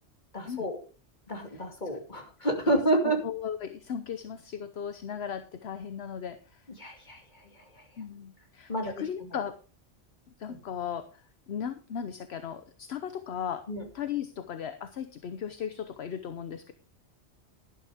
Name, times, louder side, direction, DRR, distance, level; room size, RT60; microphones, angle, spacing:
voice 1, 0.3-0.8 1.3-3.2 6.8-7.8 8.7-8.9 9.2-9.4 10.5-10.6 13.7-13.9, right 1 dB, 40° left, 4 dB, 2.5 m, -30 dB
voice 2, 3.2-6.7 8.0-9.6 10.4-13.7 13.9-16.7, left 8 dB, 65° left, 11 dB, 1.1 m, -37 dB
12.0 x 11.5 x 3.5 m, 0.34 s
omnidirectional pair, 1.2 m